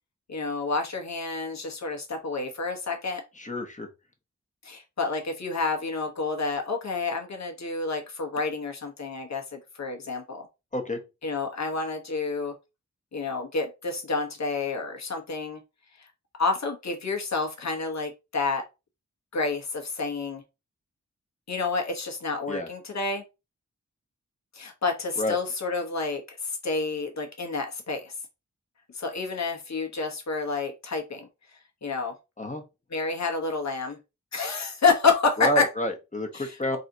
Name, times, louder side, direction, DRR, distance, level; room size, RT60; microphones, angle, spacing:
voice 1, 0.3-3.2 4.6-10.4 11.2-12.5 13.1-15.6 16.4-18.6 19.3-20.4 21.5-23.2 24.5-28.1 28.9-31.3 31.8-32.1 32.9-34.0 34.3-35.7 36.3-36.8, left 4 dB, 65° left, 3 dB, 1.4 m, -29 dB
voice 2, 3.4-3.9 10.7-11.0 22.5-22.7 25.2-25.4 32.4-32.6 35.4-36.8, equal, 25° left, 5 dB, 1.4 m, -29 dB
4.0 x 2.9 x 4.0 m, 0.26 s
cardioid pair, 60°, 30 cm